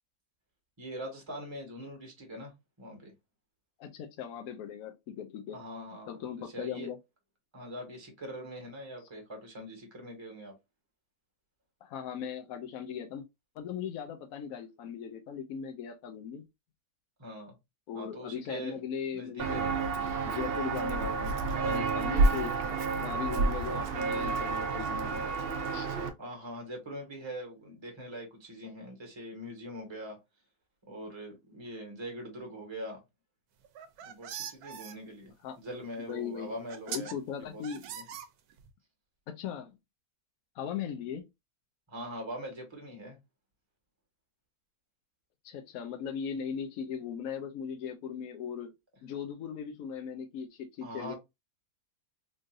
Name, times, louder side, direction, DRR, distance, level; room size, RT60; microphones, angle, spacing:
voice 1, 0.8-2.5 2.8-3.1 5.5-6.9 7.5-10.5 17.2-17.6 17.9-18.8 19.1-19.8 26.2-30.2 30.9-33.0 34.0-37.6 37.9-38.0 41.9-43.2 50.8-51.1, equal, 20° right, 1.3 m, -42 dB
voice 2, 3.8-5.6 6.1-7.0 11.8-13.2 13.6-16.4 17.9-19.7 20.2-22.6 23.0-25.3 25.7-26.0 35.4-35.6 36.0-36.5 36.9-37.8 39.3-39.8 40.5-41.2 45.4-48.7 49.0-51.1, left 8 dB, 70° left, 1.0 m, -38 dB
Walk footsteps, 19.4-26.1, right 3 dB, 60° right, 0.6 m, -29 dB
sound 1, 33.6-34.9 36.1-36.2 36.7-37.1 37.6-38.7, right 8 dB, 80° right, 1.1 m, -41 dB
3.8 x 2.6 x 2.5 m
omnidirectional pair, 1.6 m